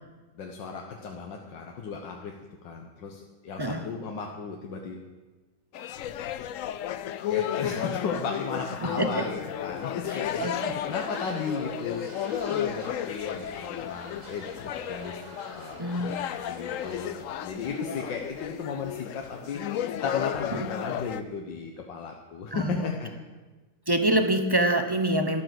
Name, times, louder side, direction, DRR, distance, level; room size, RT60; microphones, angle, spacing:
voice 1, 0.4-2.3 2.6-5.1 7.3-12.0 12.3-15.2 15.5-15.8 16.2-23.1, left 5 dB, 90° left, 2 dB, 1.9 m, -35 dB
sound 1, 5.7-21.2, left 11 dB, 70° left, 0.7 m, -33 dB
voice 2, 8.8-9.2 10.1-10.8 15.8-16.2 20.5-20.7 22.5-22.9 23.9-25.4, right 1 dB, 20° right, 7 dB, 0.8 m, -26 dB
sound 2, 10.1-17.3, right 2 dB, 40° right, 2.6 m, -47 dB
13.5 x 11.5 x 7.8 m, 1.3 s
omnidirectional pair, 1.9 m